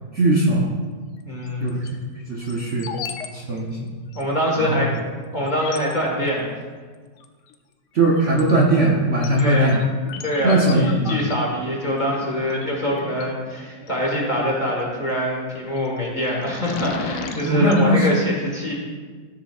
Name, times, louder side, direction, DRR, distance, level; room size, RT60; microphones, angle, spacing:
voice 1, 0.1-0.7 1.6-1.9 2.3-2.9 3.3-3.9 4.5-4.9 7.9-9.8 10.4-11.3 17.4-18.1, right 1 dB, 50° right, -3 dB, 1.1 m, -19 dB
voice 2, 1.2-1.7 4.1-4.9 5.3-6.5 9.4-9.8 10.2-18.7, equal, 25° left, -3 dB, 1.5 m, -24 dB
sound 1, 1.4-1.9 2.4-3.3 3.5-3.6 4.1-4.2 4.9-5.0 5.5-5.9 7.2-7.6 8.0-13.9 15.5-15.9 16.3-17.8, left 6 dB, 75° left, 1.2 m, -37 dB
14.0 x 7.2 x 2.4 m, 1.5 s
omnidirectional pair, 1.9 m